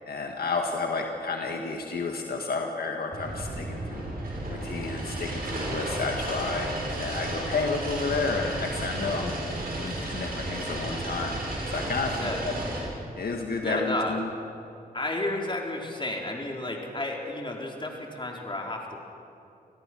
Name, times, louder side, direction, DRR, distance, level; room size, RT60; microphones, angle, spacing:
voice 1, 0.1-4.0 4.5-9.3 9.8-11.4 11.7-12.5 13.2-14.3, left 4 dB, 75° left, 2 dB, 1.7 m, -31 dB
sound 1, 3.1-12.8, right 1 dB, 70° right, 6.5 m, -33 dB
voice 2, 13.6-14.2 14.9-18.8, left 2 dB, 30° left, 0 dB, 4.2 m, -32 dB
26.5 x 17.5 x 6.2 m, 2.6 s
cardioid pair, 55°, 16 cm